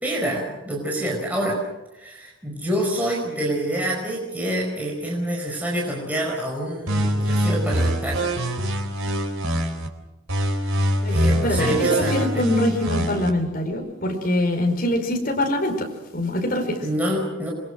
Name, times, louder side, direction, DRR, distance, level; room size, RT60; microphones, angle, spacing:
voice 1, 0.0-1.6 1.9-8.3 10.6-12.4 16.8-17.5, right 1 dB, 10° right, -2 dB, 5.0 m, -27 dB
sound 1, 6.9-9.9 10.3-13.3, right 1 dB, 90° right, 3.8 m, -23 dB
voice 2, 11.4-15.9 16.1-16.8, left 1 dB, 45° left, 2 dB, 5.0 m, -24 dB
27.5 x 22.5 x 6.3 m, 0.98 s
head